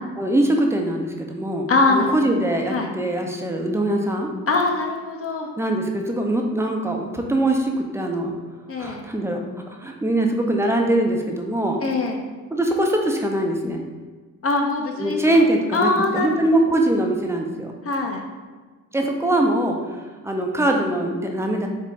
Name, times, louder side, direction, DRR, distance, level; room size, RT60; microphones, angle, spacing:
voice 1, 0.2-4.3 5.6-8.3 8.8-11.8 12.5-13.8 15.0-17.7 18.9-19.8 20.2-21.7, right 1 dB, 5° right, 2 dB, 0.5 m, -22 dB
voice 2, 1.7-2.1 2.7-2.9 4.5-5.5 8.7-9.1 11.8-12.3 14.4-15.4 15.7-16.6 17.8-18.2, left 3 dB, 30° left, 2 dB, 0.7 m, -22 dB
4.0 x 3.5 x 3.1 m, 1.3 s
figure-of-eight pair, 45°, 46 cm